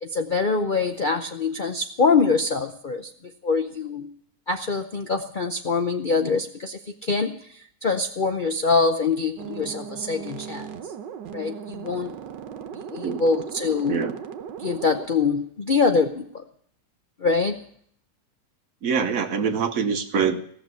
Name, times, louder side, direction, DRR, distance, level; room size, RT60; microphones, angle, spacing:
voice 1, 0.0-3.1 3.4-4.1 4.5-7.4 7.8-10.7 11.3-12.1 12.9-14.0 14.6-16.4 17.2-17.6, left 4 dB, 65° left, 6 dB, 0.4 m, -24 dB
sound 1, 9.4-15.1, right 8 dB, 80° right, 1.5 m, -37 dB
voice 2, 18.8-20.4, right 6 dB, 55° right, 8 dB, 1.2 m, -24 dB
17.0 x 6.7 x 9.4 m, 0.64 s
omnidirectional pair, 2.0 m